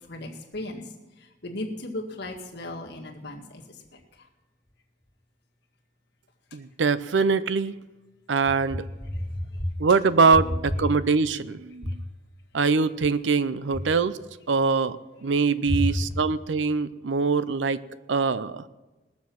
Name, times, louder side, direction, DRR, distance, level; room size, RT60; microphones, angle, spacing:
voice 1, 0.1-0.8 1.4-3.6 3.9-4.0 9.0-9.7 11.8-12.0 15.7-16.0, left 1 dB, 65° left, 0 dB, 1.9 m, -32 dB
voice 2, 6.5-7.7 8.3-8.8 9.8-12.0 12.5-14.2 14.5-15.0 15.2-17.8 18.1-18.6, right 4 dB, 75° right, 15 dB, 0.6 m, -23 dB
20.0 x 7.1 x 6.1 m, 1.1 s
head